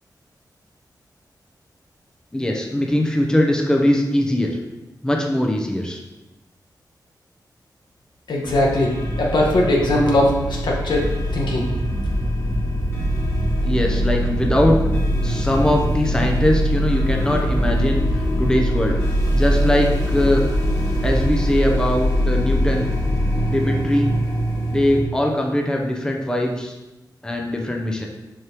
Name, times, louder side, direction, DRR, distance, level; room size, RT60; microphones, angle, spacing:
voice 1, 2.3-4.6 5.0-6.0 13.6-14.8 15.2-19.0 19.3-20.4 21.0-22.9 23.5-24.2 24.7-26.8 27.2-28.1, left 1 dB, 10° left, 1 dB, 0.6 m, -21 dB
voice 2, 8.3-11.7, left 1 dB, 85° left, -2 dB, 1.3 m, -20 dB
sound 1, 8.4-25.0, equal, 35° left, 1.6 m, -22 dB
6.5 x 5.3 x 3.0 m, 1.0 s
wide cardioid pair, 140°, 7 cm